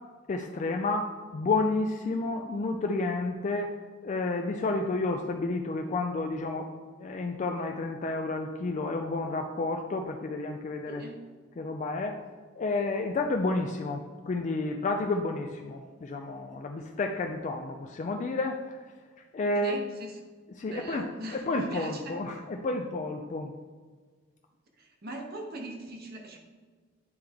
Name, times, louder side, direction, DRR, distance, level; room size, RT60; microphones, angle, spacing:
voice 1, 0.3-3.7 4.0-11.0 11.6-12.2 12.6-18.8 19.3-19.8 20.6-23.5, left 3 dB, 40° left, 4 dB, 0.3 m, -31 dB
voice 2, 10.9-11.3 19.6-20.2 20.7-22.2 24.8-26.4, right 2 dB, 50° right, 1 dB, 0.8 m, -40 dB
9.3 x 3.4 x 3.5 m, 1.5 s
head